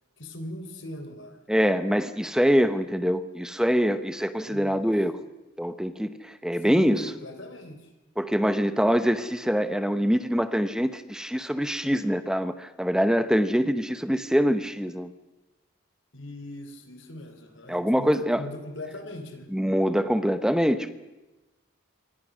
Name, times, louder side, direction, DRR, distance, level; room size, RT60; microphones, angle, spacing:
voice 1, 0.2-1.4 4.4-4.9 6.6-7.9 16.1-19.5, left 1 dB, 60° left, 6 dB, 3.9 m, -40 dB
voice 2, 1.5-5.2 5.6-7.1 8.2-15.1 17.7-18.4 19.5-20.9, equal, 5° right, 11 dB, 1.0 m, -24 dB
27.0 x 24.0 x 6.3 m, 1.1 s
head